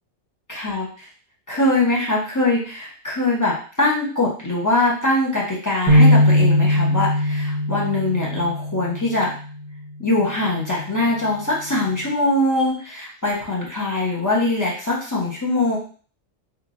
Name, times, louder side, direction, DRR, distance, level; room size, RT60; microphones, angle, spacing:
voice 1, 0.5-0.9 1.5-9.3 10.0-15.8, left 2 dB, 20° left, -6 dB, 0.7 m, -22 dB
sound 1, 5.9-9.4, left 1 dB, 20° right, 0.7 m, -18 dB
3.0 x 2.5 x 2.5 m, 0.42 s
omnidirectional pair, 1.3 m